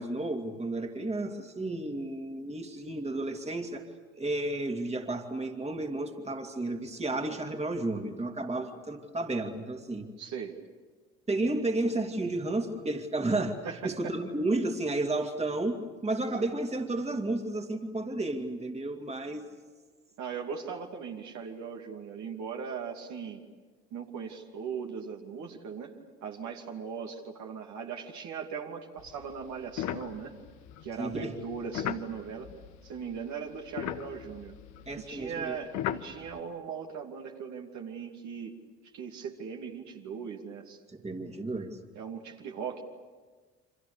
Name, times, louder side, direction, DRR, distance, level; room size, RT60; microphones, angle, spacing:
voice 1, 0.0-3.8 4.2-10.1 11.3-13.6 13.8-19.6 31.0-31.3 34.9-35.6 40.9-41.8, right 2 dB, 20° right, 4 dB, 2.8 m, -32 dB
voice 2, 10.2-10.6 13.6-14.1 16.4-16.5 20.2-23.4 23.9-26.0 26.2-30.4 30.8-32.5 32.8-34.5 34.9-38.6 38.9-40.8 42.0-42.8, right 6 dB, 55° right, 1 dB, 2.7 m, -39 dB
sound 1, 29.0-33.2 33.5-36.4, left 11 dB, 60° left, 1.3 m, -38 dB
29.5 x 25.5 x 6.9 m, 1.4 s
hypercardioid pair, 60°, 34 cm